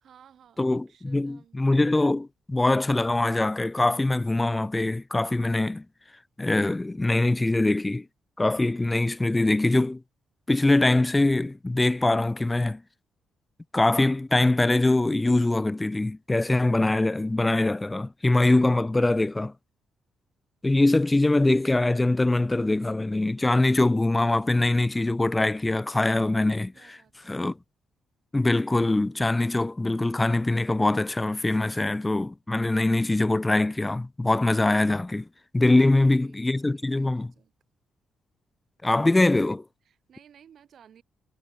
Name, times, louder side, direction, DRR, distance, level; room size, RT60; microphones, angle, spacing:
voice 1, 0.0-1.7 26.7-27.4 35.7-37.5 39.8-41.0, right 8 dB, 50° right, 3.1 m, -57 dB
voice 2, 0.6-5.8 6.4-8.1 8.4-10.0 10.5-12.8 13.7-19.5 20.6-27.0 27.3-27.6 28.3-35.3 35.5-37.3 38.8-39.6, left 2 dB, 10° left, 0.3 m, -23 dB
cardioid pair, 165°, 0 cm